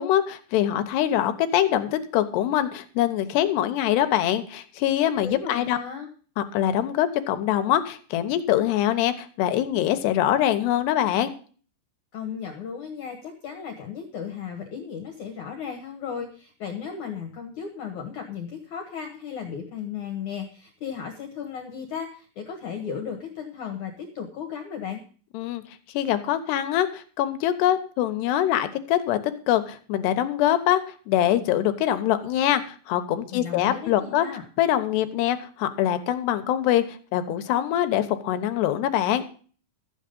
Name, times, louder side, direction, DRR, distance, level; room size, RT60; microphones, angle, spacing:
voice 1, 0.0-5.8 6.4-11.3 25.3-25.6 25.9-29.2 29.5-34.3 34.6-36.8 37.1-39.2, left 12 dB, 80° left, 10 dB, 3.1 m, -24 dB
voice 2, 5.2-6.1 12.1-25.0 33.3-34.4, left 7 dB, 55° left, 3 dB, 2.5 m, -35 dB
13.5 x 8.7 x 5.3 m, 0.41 s
omnidirectional pair, 5.0 m